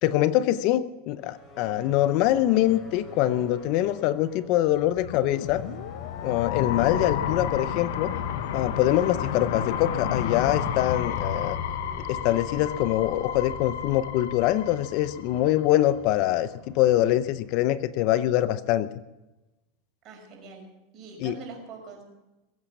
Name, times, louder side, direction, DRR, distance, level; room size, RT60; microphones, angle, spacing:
voice 1, 0.0-5.6 6.2-8.1 8.5-11.6 12.1-18.9 21.2-21.3, left 14 dB, 50° left, 14 dB, 0.7 m, -24 dB
sound 1, 1.1-18.0, left 3 dB, 20° left, 4.0 m, -43 dB
sound 2, 4.7-15.6, left 8 dB, 75° left, 1.1 m, -32 dB
voice 2, 20.0-20.6 20.9-22.0, right 4 dB, 40° right, 2 dB, 5.5 m, -43 dB
21.5 x 8.7 x 7.2 m, 1.0 s
supercardioid pair, 145°, 0 cm